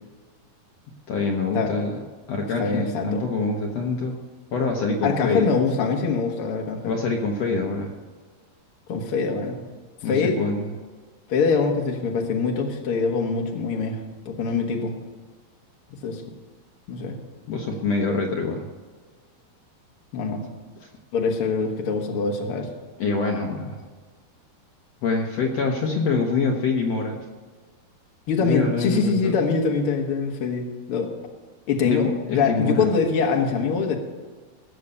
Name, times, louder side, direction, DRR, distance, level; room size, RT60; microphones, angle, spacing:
voice 1, 1.1-2.0 2.3-4.2 4.5-5.4 6.9-7.9 10.0-10.7 17.5-18.6 23.0-23.8 25.0-27.2 28.4-29.4 31.8-32.9, left 4 dB, 70° left, 0 dB, 1.5 m, -25 dB
voice 2, 2.6-3.3 5.0-6.9 8.9-9.6 10.0-10.4 11.3-14.0 14.2-14.9 16.0-16.2 16.9-17.1 20.1-20.5 21.1-22.7 28.3-31.1 31.7-32.1 32.3-34.0, left 5 dB, 55° left, 2 dB, 1.6 m, -24 dB
18.0 x 6.9 x 6.9 m, 1.4 s
omnidirectional pair, 4.4 m